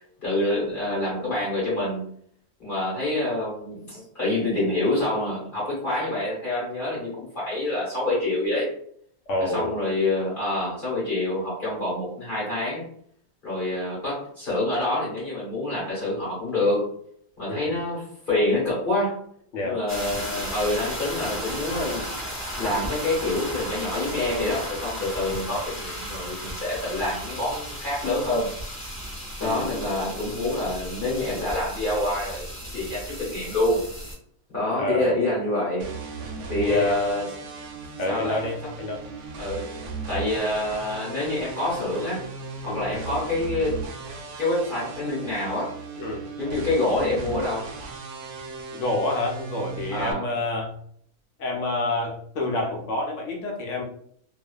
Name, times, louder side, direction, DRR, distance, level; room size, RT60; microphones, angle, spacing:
voice 1, 0.2-2.0 2.6-8.7 9.4-12.8 13.4-16.9 17.4-19.2 19.6-22.1 22.5-28.5 29.4-33.8 34.5-35.9 36.5-37.3 38.0-38.4 39.4-39.7 40.1-42.3 42.6-43.8 44.4-45.7 46.4-47.7 49.9-50.2, left 2 dB, 40° left, -7 dB, 1.0 m, -26 dB
voice 2, 9.3-9.8 17.5-17.8 19.5-19.8 29.4-29.9 34.8-35.2 36.7-37.0 38.0-39.0 42.7-42.9 46.0-46.2 48.7-50.7 51.4-53.8, left 2 dB, 70° left, 0 dB, 0.8 m, -28 dB
sound 1, 19.9-34.1, equal, 10° left, 0.6 m, -35 dB
sound 2, 35.8-50.1, right 4 dB, 85° right, 1.1 m, -37 dB
2.5 x 2.3 x 2.2 m, 0.65 s
omnidirectional pair, 1.5 m